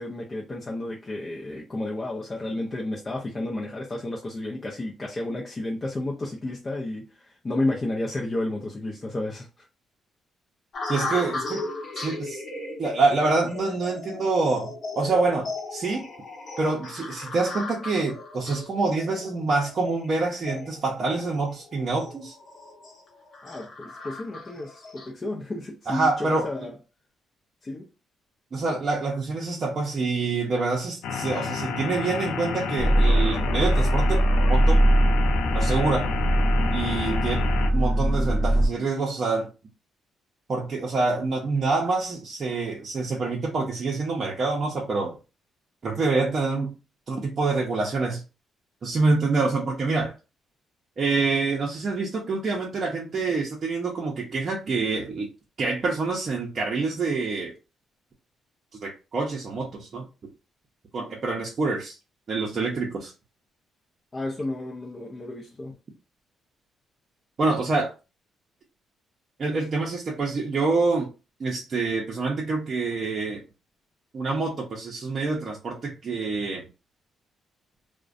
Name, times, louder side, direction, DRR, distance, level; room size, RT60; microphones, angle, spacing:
voice 1, 0.0-9.7 23.4-26.8 27.6-27.9 64.1-65.7, left 2 dB, 30° left, 0.5 m, -32 dB
sound 1, 10.7-25.1, left 3 dB, 50° left, 0.8 m, -37 dB
voice 2, 10.9-11.6 11.9-12.4 12.8-16.0 16.6-22.4 25.9-26.5 28.5-34.8 35.5-36.1 36.7-39.5 40.5-45.2 45.8-46.8 47.1-48.2 48.8-50.1 51.0-55.3 55.6-57.5 58.8-60.0 60.9-62.0 62.3-63.1 67.4-67.9 69.4-71.1 71.4-73.4 74.1-76.6, right 3 dB, 45° right, 0.6 m, -26 dB
sound 2, 31.0-37.7, left 6 dB, 90° left, 0.4 m, -31 dB
sound 3, 32.8-38.7, right 1 dB, 10° left, 0.9 m, -21 dB
2.4 x 2.1 x 2.4 m
cardioid pair, 90°, 0 cm